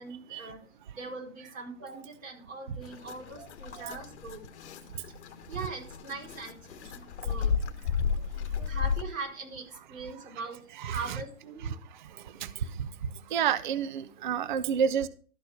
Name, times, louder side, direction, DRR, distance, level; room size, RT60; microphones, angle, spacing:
voice 1, 0.0-4.5 5.5-7.6 7.8-11.8, right 3 dB, 60° right, 0 dB, 4.6 m, -42 dB
sound 1, 2.8-9.0, left 6 dB, 50° left, 1.4 m, -33 dB
voice 2, 10.8-11.2 12.1-12.9 13.3-15.1, right 8 dB, 35° right, 17 dB, 0.4 m, -30 dB
12.5 x 4.3 x 6.8 m, 0.41 s
hypercardioid pair, 135°, 44 cm